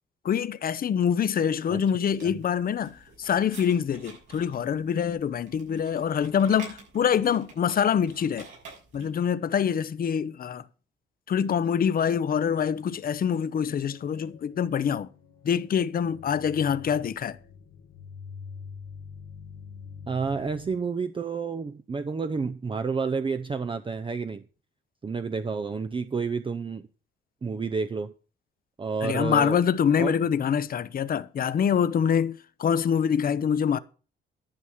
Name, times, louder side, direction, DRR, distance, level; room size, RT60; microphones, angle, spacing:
voice 1, 0.2-8.5 8.9-10.6 11.3-15.1 15.4-17.4 29.0-33.8, left 8 dB, 45° left, 0.8 m, -25 dB
sound 1, 2.0-9.2, right 4 dB, 85° right, 6.4 m, -49 dB
sound 2, 12.7-20.8, left 6 dB, 85° left, 1.5 m, -46 dB
voice 2, 20.1-24.4 25.0-26.9 27.4-28.1 28.8-29.6 30.0-30.1, right 5 dB, 25° right, 0.7 m, -30 dB
11.5 x 6.2 x 7.3 m
cardioid pair, 90°, 20 cm